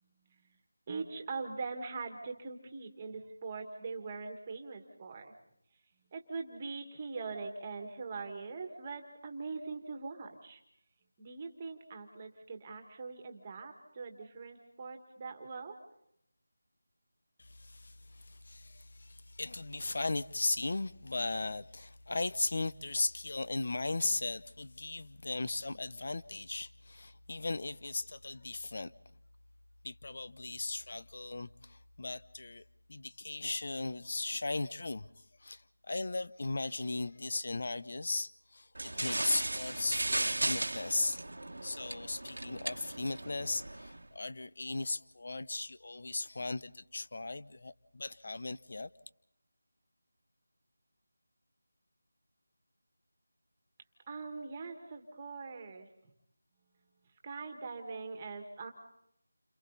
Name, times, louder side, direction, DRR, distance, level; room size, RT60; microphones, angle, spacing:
voice 1, 0.0-0.6 0.9-5.3 6.1-10.6 11.2-15.7 54.1-55.9 57.2-58.7, right 4 dB, 20° right, 1.9 m, -42 dB
voice 2, 17.4-28.9 29.8-32.6 32.9-35.1 35.4-41.2 41.6-48.9, left 2 dB, 45° left, 0.8 m, -37 dB
sound 1, 38.7-44.0, right 2 dB, 85° right, 1.3 m, -36 dB
30.0 x 27.0 x 4.1 m
figure-of-eight pair, 175°, 0 cm